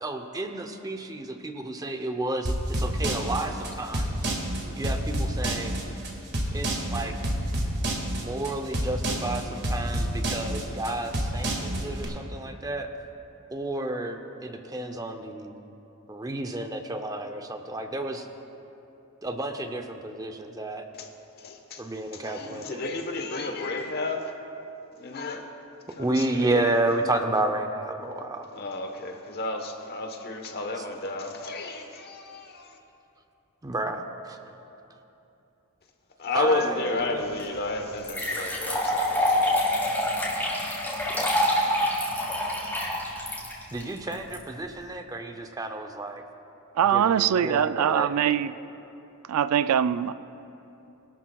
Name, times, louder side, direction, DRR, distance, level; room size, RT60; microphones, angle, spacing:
voice 1, 0.0-4.3 4.8-5.8 6.5-7.1 8.1-12.9 13.5-15.5 16.1-18.3 19.2-20.9 21.8-22.8 26.0-28.5 33.6-34.4 36.3-37.2 41.1-41.4 43.7-46.2 46.8-48.1, right 2 dB, 15° right, 5 dB, 0.6 m, -31 dB
sound 1, 2.4-12.0, right 1 dB, 50° right, 1.9 m, -28 dB
voice 2, 21.4-21.8 22.1-24.3 25.0-25.4 26.0-26.7 28.5-32.8 36.2-39.5, left 2 dB, 45° left, 4 dB, 1.1 m, -32 dB
sound 2, 37.4-37.5 38.0-44.3, left 1 dB, 10° left, 2.8 m, -26 dB
voice 3, 46.7-48.5 49.3-50.1, right 9 dB, 80° right, 14 dB, 0.3 m, -23 dB
22.5 x 12.0 x 2.3 m, 2.9 s
head